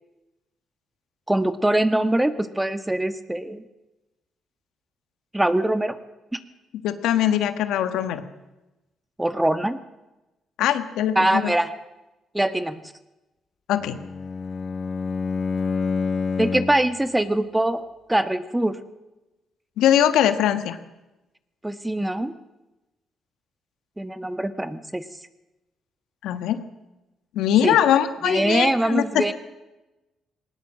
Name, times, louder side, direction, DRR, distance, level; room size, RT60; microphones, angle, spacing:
voice 1, 1.3-3.6 5.3-6.0 6.3-6.4 9.2-9.8 11.1-11.7 12.3-12.8 16.4-17.8 18.1-18.8 21.6-22.3 24.0-25.0 27.6-27.8 28.2-29.3, right 1 dB, 10° right, 12 dB, 1.4 m, -23 dB
voice 2, 6.8-8.2 10.6-11.5 13.7-14.0 19.8-20.8 26.2-26.6 27.3-29.2, left 10 dB, 85° left, 10 dB, 1.4 m, -21 dB
Bowed string instrument, 13.7-16.9, left 5 dB, 45° left, 1.1 m, -27 dB
19.5 x 19.0 x 7.5 m, 1.0 s
cardioid pair, 90°, 0 cm